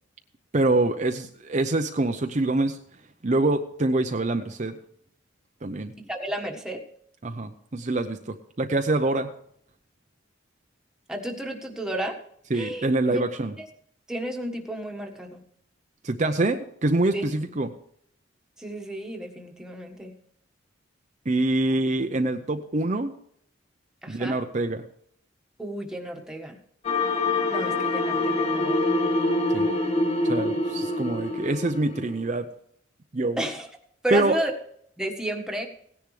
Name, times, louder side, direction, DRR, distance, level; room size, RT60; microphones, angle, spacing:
voice 1, 0.5-2.8 3.2-4.7 5.6-5.9 7.2-9.3 12.5-13.5 16.0-17.7 21.3-23.1 24.1-24.8 29.5-29.7 30.3-32.5 33.1-33.4 34.1-34.4, right 2 dB, 40° right, 6 dB, 0.7 m, -25 dB
voice 2, 6.0-6.8 11.1-12.2 12.5-13.2 13.6-13.7 14.1-15.4 17.1-17.2 18.6-20.1 24.0-24.4 25.6-26.6 27.5-28.8 33.4-33.7 34.0-34.5 35.0-35.7, right 1 dB, 5° right, 2 dB, 1.5 m, -32 dB
sound 1, 26.8-32.2, left 2 dB, 35° left, 1.4 m, -25 dB
17.5 x 10.5 x 3.3 m, 0.67 s
head